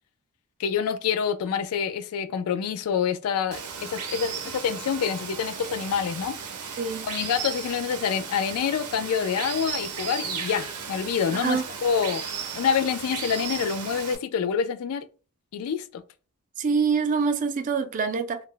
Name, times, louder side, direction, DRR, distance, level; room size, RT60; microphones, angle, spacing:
voice 1, 0.6-6.4 7.0-12.2 12.6-15.0 15.5-16.0, left 7 dB, 75° left, 0.3 m, -27 dB
Water, 3.5-14.2, right 6 dB, 90° right, 0.6 m, -35 dB
voice 2, 11.3-11.6 16.6-18.4, right 5 dB, 35° right, 0.3 m, -25 dB
2.2 x 2.0 x 3.7 m
head